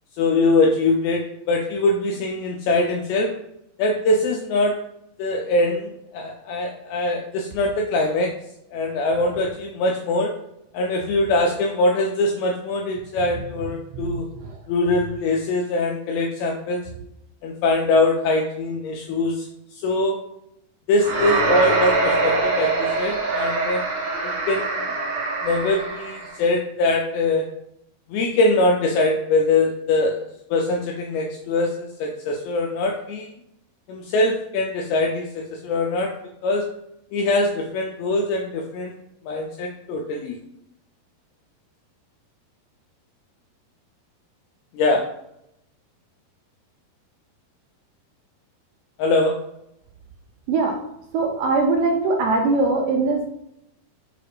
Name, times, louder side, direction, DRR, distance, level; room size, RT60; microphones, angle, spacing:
voice 1, 0.2-3.3 3.8-4.7 5.2-8.3 8.7-10.3 10.7-14.3 14.7-16.9 17.4-19.5 19.8-20.2 20.9-23.8 24.2-24.8 25.4-27.4 28.1-30.2 30.5-33.3 33.9-36.1 36.4-36.7 37.1-38.9 39.3-40.4 44.7-45.0 49.0-49.4, left 2 dB, 85° left, 1 dB, 2.2 m, -22 dB
sound 1, 21.0-26.4, right 3 dB, 65° right, 1.8 m, -23 dB
voice 2, 51.1-53.2, right 3 dB, 80° right, 2 dB, 2.3 m, -21 dB
6.5 x 2.3 x 3.3 m, 0.80 s
omnidirectional pair, 4.8 m